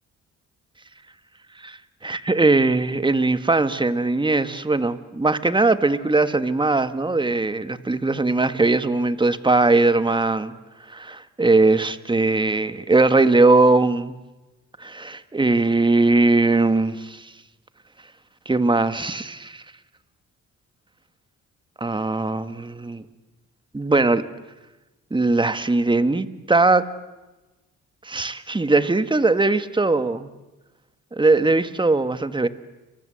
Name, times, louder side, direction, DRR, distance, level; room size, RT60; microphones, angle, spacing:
voice 1, 1.6-10.5 10.9-14.1 14.8-17.3 18.4-19.6 21.8-23.0 23.7-24.2 25.1-26.8 28.0-30.3 31.1-32.5, right 3 dB, 15° right, 11 dB, 1.8 m, -20 dB
30.0 x 24.5 x 7.9 m, 1.1 s
cardioid pair, 90°, 30 cm